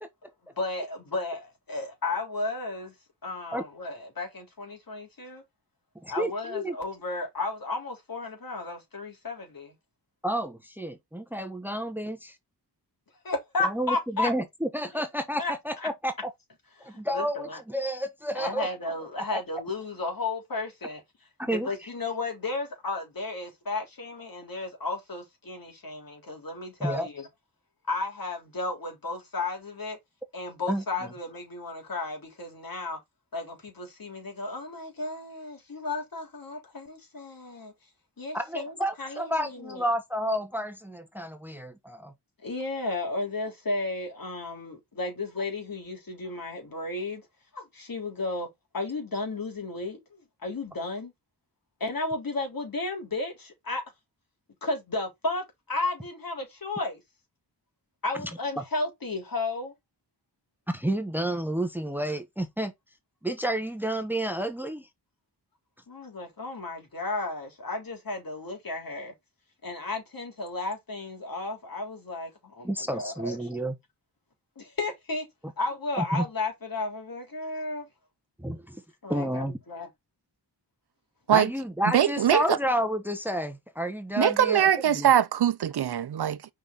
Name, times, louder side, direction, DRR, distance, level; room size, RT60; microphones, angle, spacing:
voice 1, 0.6-2.9 3.2-5.4 6.1-9.8 13.2-14.3 14.9-15.0 15.4-15.9 16.8-17.6 18.3-21.0 21.4-27.3 27.9-30.0 30.3-33.0 33.3-37.7 38.2-39.9 42.4-47.2 47.5-48.5 48.7-51.1 51.8-53.8 54.6-57.0 58.0-59.7 65.9-69.1 69.6-73.4 74.6-75.3 75.6-77.9 79.0-79.9, left 3 dB, 55° left, 3.9 m, -33 dB
voice 2, 6.0-6.8 10.2-12.4 13.6-16.1 16.8-18.7 19.2-19.3 21.4-21.7 26.8-27.1 30.7-30.8 38.3-42.1 58.6-58.7 60.7-62.7 63.2-64.9 72.6-73.7 76.0-76.2 78.4-78.5 79.1-79.6 81.3-84.7 84.9-85.1, equal, 5° right, 1.1 m, -30 dB
voice 3, 81.9-82.6 84.2-86.4, right 10 dB, 70° right, 0.7 m, -22 dB
5.4 x 4.8 x 3.9 m
wide cardioid pair, 70°, 41 cm